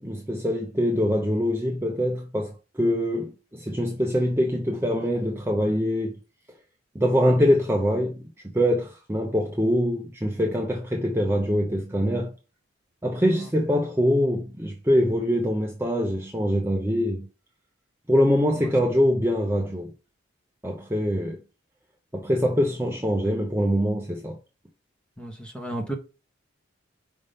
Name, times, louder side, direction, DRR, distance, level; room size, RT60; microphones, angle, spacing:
voice 1, 0.0-6.2 6.9-12.3 13.0-17.3 18.1-19.9 20.6-21.4 22.1-24.4, equal, 10° right, 0.6 m, -24 dB
voice 2, 25.2-25.9, right 1 dB, 5° left, 1.0 m, -33 dB
5.2 x 3.6 x 5.2 m
head